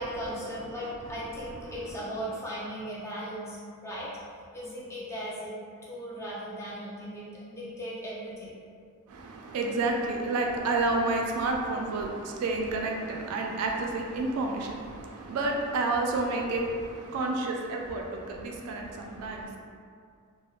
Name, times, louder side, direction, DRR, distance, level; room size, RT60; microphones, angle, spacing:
voice 1, 0.0-4.1 4.5-5.5 5.8-8.6, equal, 10° left, -7 dB, 0.4 m, -37 dB
voice 2, 9.1-19.6, right 2 dB, 90° right, 1 dB, 0.3 m, -30 dB
2.8 x 2.0 x 2.3 m, 2.2 s
head